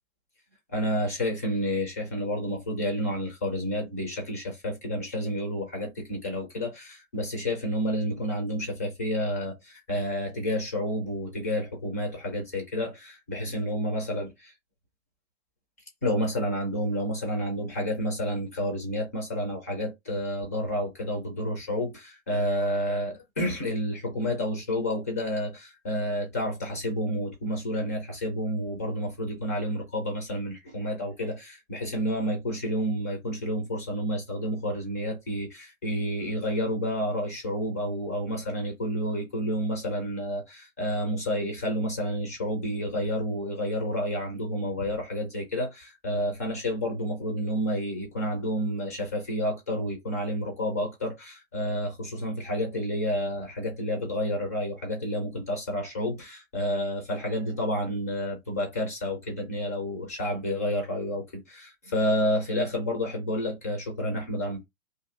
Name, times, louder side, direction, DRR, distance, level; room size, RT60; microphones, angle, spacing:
voice 1, 0.7-14.5 16.0-64.6, equal, 15° left, 0.3 m, -30 dB
2.6 x 2.5 x 3.6 m
figure-of-eight pair, 120°, 41 cm